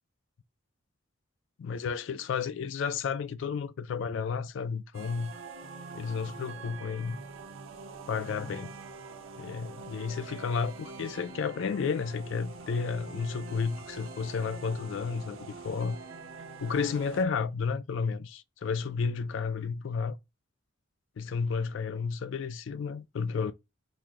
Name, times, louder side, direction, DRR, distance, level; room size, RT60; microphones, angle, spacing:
voice 1, 1.6-5.3 5.9-7.2 8.1-8.7 9.4-16.0 16.6-20.2 21.2-23.5, left 5 dB, 65° left, 0.3 m, -32 dB
sound 1, 4.9-17.2, right 4 dB, 75° right, 0.8 m, -45 dB
6.1 x 2.2 x 3.6 m
head